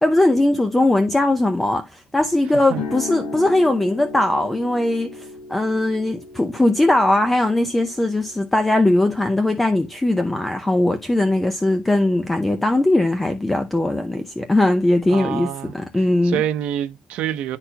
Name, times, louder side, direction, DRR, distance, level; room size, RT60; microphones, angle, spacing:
voice 1, 0.0-16.4, left 1 dB, 10° left, 0.6 m, -19 dB
sound 1, 2.7-10.7, left 4 dB, 65° left, 5.5 m, -37 dB
voice 2, 15.1-17.6, right 10 dB, 70° right, 0.7 m, -27 dB
11.5 x 4.3 x 2.3 m
cardioid pair, 165°, 2 cm